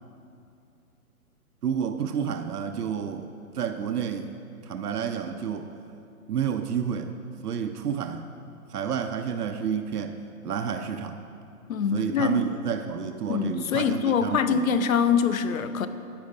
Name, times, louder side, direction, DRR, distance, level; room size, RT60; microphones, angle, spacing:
voice 1, 1.6-3.3 3.5-4.3 4.6-5.7 6.3-7.1 7.4-8.3 8.7-10.2 10.4-11.2 11.9-14.7, right 7 dB, 90° right, 7 dB, 0.7 m, -30 dB
voice 2, 11.7-12.4 13.3-15.9, left 7 dB, 65° left, 11 dB, 0.7 m, -24 dB
10.5 x 8.8 x 4.0 m, 2.6 s
hypercardioid pair, 165°, 45 cm